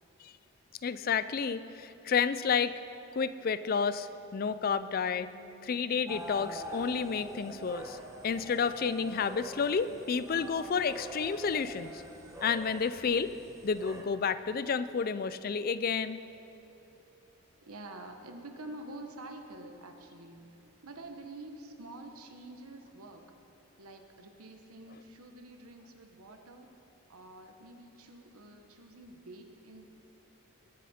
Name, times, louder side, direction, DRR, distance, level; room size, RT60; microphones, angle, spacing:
voice 1, 0.8-2.7 3.2-5.3 5.6-8.0 8.2-11.9 12.4-13.3 13.6-16.2, left 6 dB, 40° left, 14 dB, 0.4 m, -30 dB
Bass guitar, 4.7-10.9, right 2 dB, 65° right, 0.9 m, -62 dB
sound 1, 6.1-14.0, right 1 dB, 15° right, 1.1 m, -45 dB
voice 2, 17.6-23.3 23.8-26.7 27.1-29.8, right 2 dB, 85° right, 5 dB, 1.1 m, -48 dB
21.5 x 8.3 x 4.3 m, 3.0 s
head